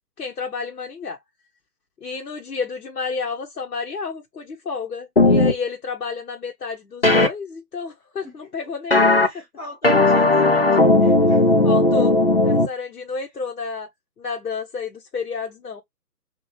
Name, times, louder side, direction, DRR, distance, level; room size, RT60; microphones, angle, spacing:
voice 1, 0.2-1.2 2.0-9.4 11.6-12.2 12.4-13.9 14.2-15.8, left 5 dB, 75° left, 1.0 m, -30 dB
sound 1, 5.2-5.5 7.0-7.3 8.9-9.3 9.8-12.7, left 2 dB, 40° left, 0.4 m, -16 dB
voice 2, 9.2-11.4, right 1 dB, 5° left, 1.0 m, -39 dB
4.3 x 2.3 x 3.1 m
figure-of-eight pair, 150°, 49 cm